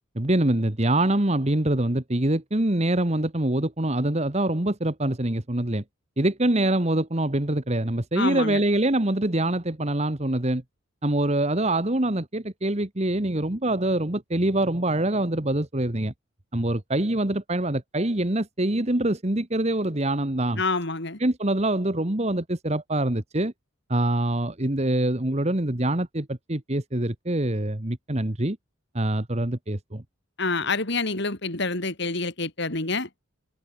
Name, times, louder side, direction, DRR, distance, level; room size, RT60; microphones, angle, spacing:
voice 1, 0.1-5.8 6.2-10.6 11.0-16.1 16.5-20.6 21.2-23.5 23.9-28.6 28.9-30.0, right 1 dB, 30° right, 1.5 m, -24 dB
voice 2, 8.2-8.6 20.6-21.2 30.4-33.2, left 3 dB, 55° left, 3.1 m, -27 dB
head